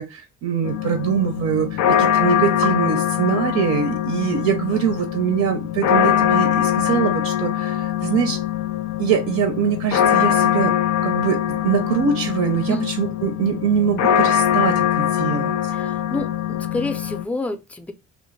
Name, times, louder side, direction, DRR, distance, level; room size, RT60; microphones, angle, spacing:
voice 1, 0.0-8.4 9.0-10.7 11.0-15.7, right 7 dB, 65° right, 0.6 m, -23 dB
sound 1, 0.6-17.2, left 10 dB, 70° left, 0.5 m, -22 dB
voice 2, 15.7-17.9, left 2 dB, 5° left, 0.4 m, -28 dB
2.5 x 2.1 x 3.1 m
cardioid pair, 90°, 30 cm